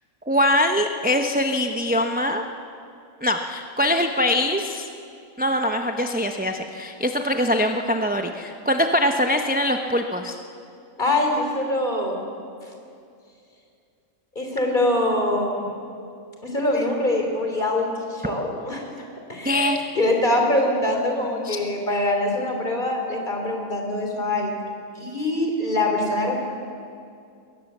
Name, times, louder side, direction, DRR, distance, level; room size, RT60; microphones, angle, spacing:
voice 1, 0.3-2.4 3.2-4.9 5.4-10.4 19.4-19.8 21.4-21.6, left 1 dB, 10° right, 4 dB, 0.7 m, -23 dB
voice 2, 11.0-12.2 12.6-12.7 14.3-15.6 16.4-18.9 19.3-24.5 24.9-26.4, left 1 dB, 35° left, 2 dB, 3.3 m, -24 dB
22.0 x 18.0 x 7.3 m, 2.5 s
omnidirectional pair, 1.4 m